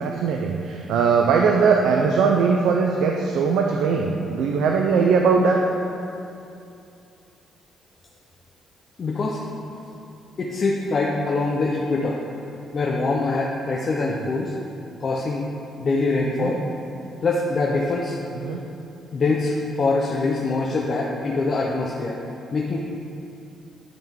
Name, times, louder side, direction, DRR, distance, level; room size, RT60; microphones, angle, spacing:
voice 1, 0.0-5.6 14.2-14.3 16.3-16.5 18.4-18.6, right 5 dB, 85° right, 1 dB, 0.4 m, -20 dB
voice 2, 9.0-9.5 10.4-12.2 12.7-14.6 15.0-15.5 15.8-16.6 17.2-18.2 19.1-22.2 22.5-22.8, left 3 dB, 45° left, -2 dB, 0.6 m, -24 dB
10.5 x 3.8 x 3.6 m, 2.7 s
cardioid pair, 90°, 0 cm